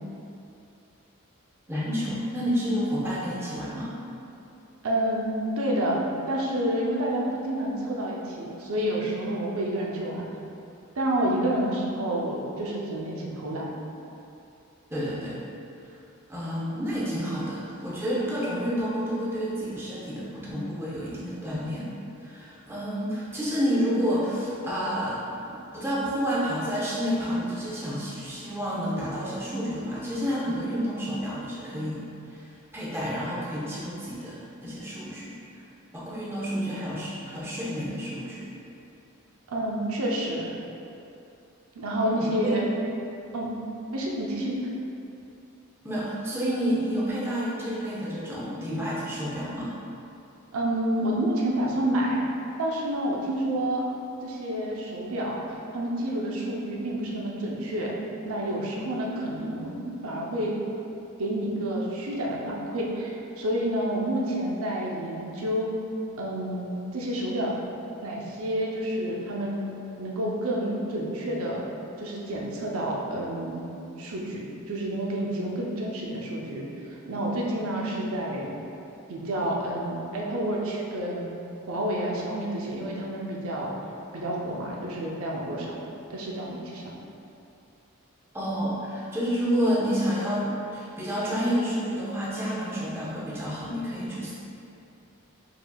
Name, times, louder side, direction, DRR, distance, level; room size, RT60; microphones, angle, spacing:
voice 1, 1.7-3.9 14.9-15.4 16.3-21.9 22.2-32.0 32.3-35.3 35.9-38.5 42.1-42.6 45.8-49.7 88.3-94.3, equal, 10° right, -8 dB, 0.6 m, -29 dB
voice 2, 4.8-10.3 11.0-13.7 39.5-40.5 41.8-42.6 43.3-43.5 43.9-44.5 50.5-52.2 52.6-53.8 54.2-57.9 58.2-60.5 61.2-65.7 66.2-67.5 68.0-69.6 70.0-71.6 72.0-73.7 74.0-78.6 79.1-81.4 81.7-83.7 84.1-85.8 86.1-86.8, right 1 dB, 75° right, -3 dB, 0.6 m, -29 dB
4.7 x 4.0 x 2.3 m, 2.7 s
head